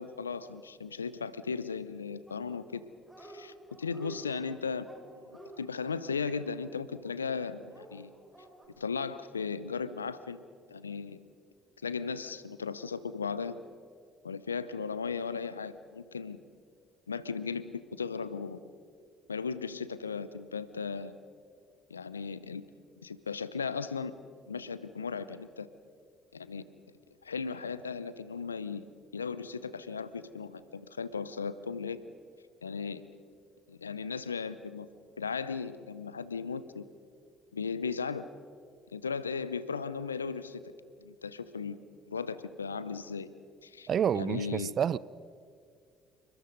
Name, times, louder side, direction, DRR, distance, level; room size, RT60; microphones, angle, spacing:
voice 1, 0.0-2.8 3.2-4.9 5.3-8.1 8.8-10.4 10.7-11.2 11.8-13.6 14.2-16.4 17.1-18.6 19.3-21.1 21.9-22.6 23.0-24.1 24.5-25.7 26.3-26.7 27.2-28.9 29.1-32.0 32.6-33.0 33.7-34.9 35.2-36.9 37.5-38.3 38.9-40.6 41.0-41.8 42.1-43.3 43.6-43.9 44.1-44.8, left 5 dB, 90° left, 0.7 m, -36 dB
Dog, 2.3-2.8 3.0-3.4 3.7-7.1 7.7-8.7, right 2 dB, 15° right, 6.3 m, -51 dB
voice 2, 43.9-45.0, right 8 dB, 50° right, 0.6 m, -28 dB
28.5 x 23.0 x 5.3 m
figure-of-eight pair, 50°, 0 cm